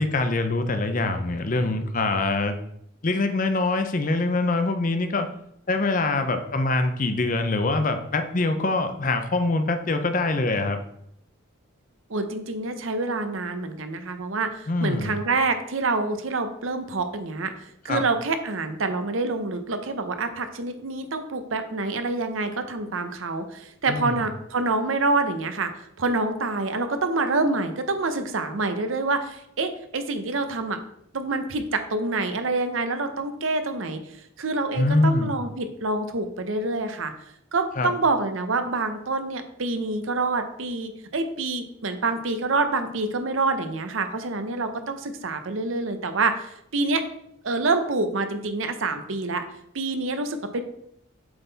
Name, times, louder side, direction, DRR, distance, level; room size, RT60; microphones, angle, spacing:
voice 1, 0.0-2.5 3.0-5.3 5.7-10.8 14.7-15.1 17.9-18.0 23.9-24.2 34.8-35.3 37.8-37.9, left 2 dB, 40° left, 8 dB, 0.6 m, -24 dB
voice 2, 12.1-25.7 26.0-30.8 31.1-34.0 34.4-37.1 37.5-47.0 47.4-49.4 49.7-50.6, right 3 dB, 75° right, 8 dB, 0.8 m, -27 dB
7.9 x 3.9 x 4.0 m, 0.74 s
head